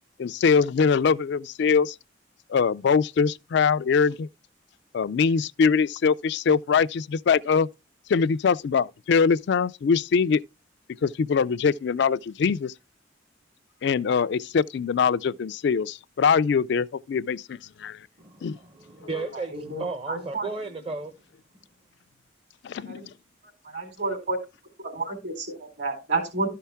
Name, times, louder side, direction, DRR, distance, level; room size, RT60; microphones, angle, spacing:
voice 1, 0.2-2.0 2.5-4.3 4.9-7.7 8.1-10.4 11.0-12.7 13.8-18.1 18.4-18.6 19.1-19.2 22.6-23.1, left 6 dB, 60° left, 0.3 m, -23 dB
voice 2, 18.2-21.2, right 3 dB, 30° right, 0.8 m, -34 dB
voice 3, 19.3-20.5 22.8-23.1 23.6-24.4 24.8-26.5, right 3 dB, 60° right, 4.0 m, -30 dB
12.5 x 5.6 x 3.5 m
head